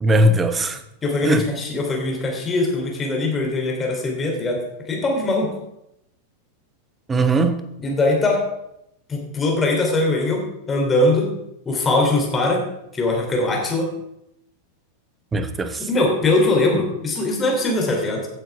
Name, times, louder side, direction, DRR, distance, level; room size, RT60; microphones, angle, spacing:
voice 1, 0.0-0.8 1.2-1.5 7.1-7.6 15.3-15.8, right 1 dB, 15° right, 10 dB, 1.0 m, -19 dB
voice 2, 1.0-5.6 7.8-8.4 9.1-11.3 11.6-12.6 12.9-13.9 15.8-18.3, left 2 dB, 20° left, 0 dB, 3.2 m, -21 dB
16.0 x 9.0 x 3.5 m, 0.82 s
figure-of-eight pair, 90°, 0 cm